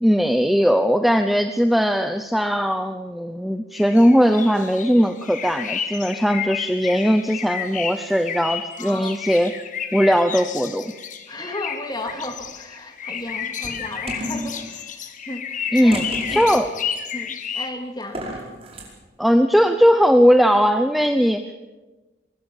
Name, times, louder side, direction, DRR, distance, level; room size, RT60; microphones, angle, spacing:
voice 1, 0.0-9.5 9.9-10.9 15.7-16.0 16.3-16.7 19.2-21.4, equal, ahead, 7 dB, 0.7 m, -18 dB
sound 1, 3.7-17.7, left 7 dB, 40° left, 1.6 m, -31 dB
voice 2, 8.8-9.2 11.3-15.5 15.8-16.5 17.1-18.2, left 1 dB, 20° left, 6 dB, 2.4 m, -34 dB
sound 2, 11.9-12.5 13.2-14.7 15.9-16.7 18.0-18.9, equal, 30° right, 5.3 m, -32 dB
23.0 x 20.0 x 7.4 m, 1.2 s
head